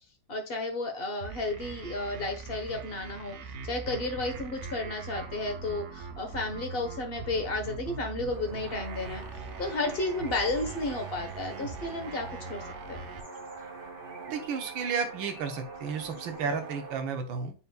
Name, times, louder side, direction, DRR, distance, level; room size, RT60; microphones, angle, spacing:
voice 1, 0.3-3.4 3.6-9.2 9.6-12.6 12.9-13.0, left 2 dB, 35° left, 4 dB, 1.1 m, -32 dB
sound 1, 1.2-13.2, right 4 dB, 60° right, 0.8 m, -42 dB
sound 2, 8.3-17.0, right 3 dB, 35° right, 1.1 m, -43 dB
voice 2, 14.3-17.5, right 5 dB, 85° right, 5 dB, 1.8 m, -32 dB
9.3 x 4.4 x 2.3 m, 0.33 s
omnidirectional pair, 2.1 m